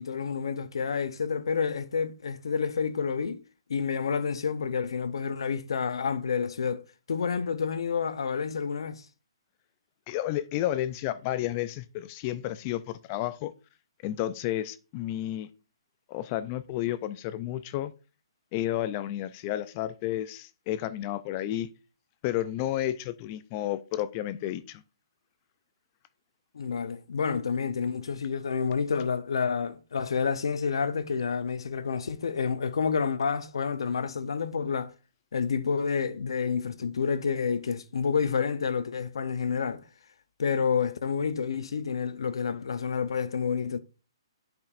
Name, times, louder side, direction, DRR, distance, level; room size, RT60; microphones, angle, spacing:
voice 1, 0.0-3.4 3.7-9.1 26.5-34.9 35.3-39.8 40.4-43.8, left 6 dB, 75° left, 0.7 m, -29 dB
voice 2, 10.1-13.5 14.0-15.5 16.1-17.9 18.5-21.7 22.2-24.8, left 13 dB, 25° left, 0.3 m, -31 dB
9.8 x 5.2 x 2.5 m
hypercardioid pair, 165°, 3 cm